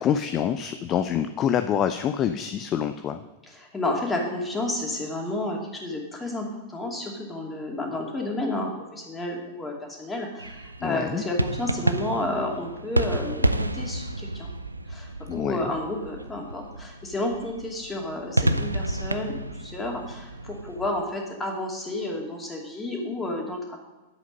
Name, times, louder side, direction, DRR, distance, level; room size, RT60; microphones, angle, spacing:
voice 1, 0.0-3.2 10.8-11.2 15.3-15.7, left 9 dB, 30° left, 10 dB, 0.5 m, -26 dB
voice 2, 3.5-14.5 14.9-23.8, left 2 dB, 15° left, 0 dB, 2.6 m, -31 dB
sound 1, 10.4-21.0, right 1 dB, 90° right, 0.5 m, -30 dB
10.5 x 8.0 x 5.2 m, 1.1 s
figure-of-eight pair, 95°, 0 cm